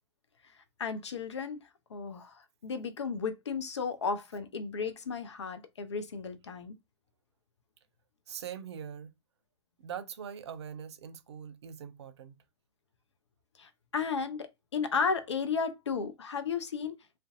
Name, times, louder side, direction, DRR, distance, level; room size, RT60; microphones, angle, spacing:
voice 1, 0.8-1.6 1.9-6.8 13.6-16.9, left 5 dB, 85° left, 0.5 m, -34 dB
voice 2, 8.3-9.1 9.8-12.3, right 8 dB, 75° right, 0.5 m, -42 dB
2.4 x 2.2 x 2.5 m
hypercardioid pair, 100°, 14 cm